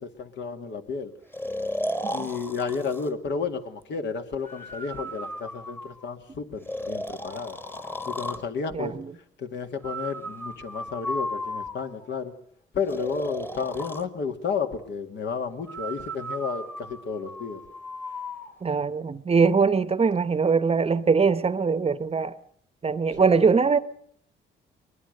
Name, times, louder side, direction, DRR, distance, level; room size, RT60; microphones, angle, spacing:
voice 1, 0.0-1.1 2.1-7.6 8.0-9.0 9.4-12.3 12.7-17.6 23.1-23.3, left 5 dB, 65° left, 2.1 m, -32 dB
Breathing, 1.3-3.1 4.4-6.1 6.7-8.5 9.8-12.1 12.9-14.0 15.7-18.5, equal, 10° left, 1.5 m, -35 dB
voice 2, 8.7-9.1 18.6-22.3 22.8-23.8, right 5 dB, 30° right, 0.9 m, -22 dB
22.0 x 21.0 x 6.6 m
cardioid pair, 90°, 20 cm